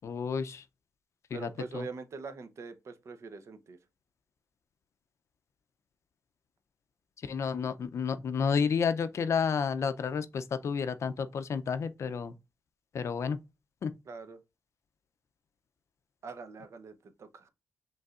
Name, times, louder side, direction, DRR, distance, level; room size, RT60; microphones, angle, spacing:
voice 1, 0.0-0.6 1.3-1.8 7.2-12.3 12.9-13.4 13.8-13.9, left 6 dB, 60° left, 0.5 m, -31 dB
voice 2, 1.3-3.8 14.1-14.4 16.2-16.9 17.2-17.5, right 4 dB, 60° right, 0.7 m, -43 dB
5.3 x 3.2 x 2.4 m
cardioid pair, 90°, 5 cm